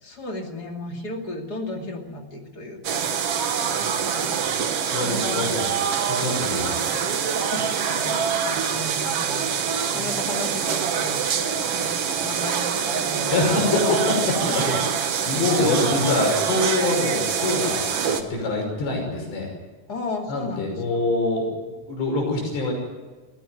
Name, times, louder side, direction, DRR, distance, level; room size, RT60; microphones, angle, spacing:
voice 1, 0.0-3.5 4.1-5.4 7.5-11.9 12.2-13.5 14.5-15.0 15.5-15.6 19.9-20.8, left 2 dB, 30° left, 2 dB, 2.2 m, -35 dB
sound 1, 2.8-18.2, right 7 dB, 80° right, 1.3 m, -25 dB
voice 2, 3.6-3.9 4.8-5.7 6.1-6.8 9.9-10.1 13.3-14.8 15.3-19.5 20.3-22.7, left 2 dB, 85° left, 1 dB, 8.0 m, -25 dB
20.5 x 15.5 x 9.4 m, 1.3 s
omnidirectional pair, 4.8 m